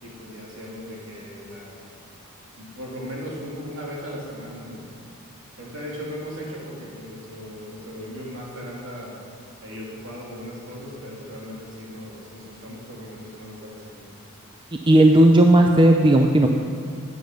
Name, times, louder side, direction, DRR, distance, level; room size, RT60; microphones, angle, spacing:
voice 1, 0.0-1.8 2.6-4.8 5.6-9.2 9.6-14.2, equal, 60° right, -3 dB, 3.0 m, -37 dB
voice 2, 14.7-16.5, right 1 dB, 20° right, 3 dB, 0.5 m, -15 dB
14.0 x 9.5 x 5.3 m, 2.4 s
head